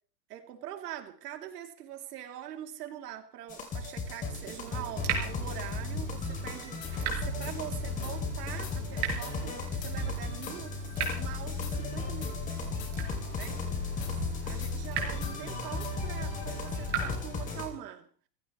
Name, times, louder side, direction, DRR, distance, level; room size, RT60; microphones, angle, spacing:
voice 1, 0.3-12.7 13.3-13.6 14.1-18.1, right 11 dB, 70° right, 3.2 m, -43 dB
sound 1, 3.5-17.7, left 4 dB, 15° left, 3.0 m, -35 dB
Water tap faucet / Drip, 4.3-17.2, right 7 dB, 30° right, 5.2 m, -39 dB
sound 2, 6.8-7.0 7.4-7.5 8.0-8.2 8.6-8.8 9.2-9.4 9.8-9.9 10.4-10.6 11.0-11.1 11.6-11.8 12.2-12.3 12.8-12.9 13.4-13.5 14.0-14.1 14.6-14.7 15.2-15.3 15.8-15.9, left 9 dB, 40° left, 3.6 m, -45 dB
25.5 x 16.0 x 3.2 m
supercardioid pair, 170°, 49 cm